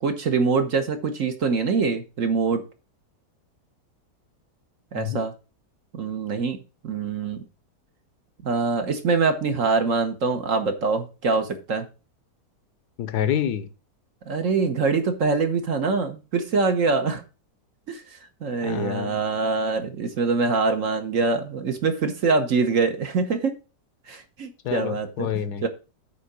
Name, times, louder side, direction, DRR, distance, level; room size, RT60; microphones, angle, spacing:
voice 1, 0.0-2.6 4.9-5.3 5.9-6.6 6.8-7.4 8.4-11.9 14.3-17.2 17.9-18.0 18.4-23.5 24.1-25.3 25.6-25.7, right 4 dB, 55° right, 7 dB, 1.4 m, -24 dB
voice 2, 13.0-13.7 18.6-19.2 24.6-25.6, left 9 dB, 75° left, 13 dB, 1.3 m, -27 dB
8.5 x 3.8 x 6.8 m, 0.31 s
omnidirectional pair, 1.8 m